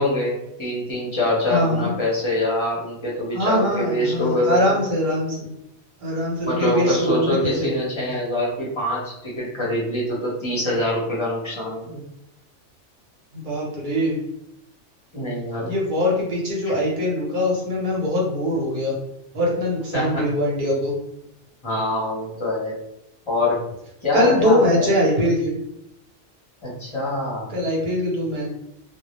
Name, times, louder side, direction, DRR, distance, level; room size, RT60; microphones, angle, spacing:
voice 1, 0.0-4.7 6.4-12.0 15.1-15.7 19.9-20.3 21.6-22.7 23.3-23.6 24.0-24.9 26.6-27.5, left 1 dB, 30° left, -6 dB, 0.6 m, -24 dB
voice 2, 1.5-1.9 3.3-5.4 6.0-7.7 13.3-14.2 15.7-19.0 19.3-21.0 24.1-25.5 27.5-28.5, left 1 dB, 50° right, -4 dB, 0.9 m, -22 dB
2.2 x 2.0 x 2.9 m, 0.82 s
omnidirectional pair, 1.2 m